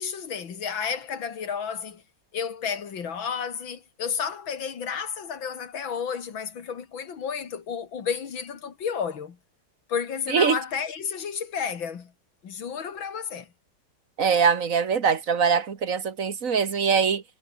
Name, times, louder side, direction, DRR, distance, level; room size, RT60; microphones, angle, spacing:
voice 1, 0.0-2.0 2.3-9.4 9.9-12.1 12.4-13.5, left 7 dB, 80° left, 2.8 m, -32 dB
voice 2, 14.2-17.2, right 6 dB, 45° right, 1.9 m, -22 dB
omnidirectional pair, 2.1 m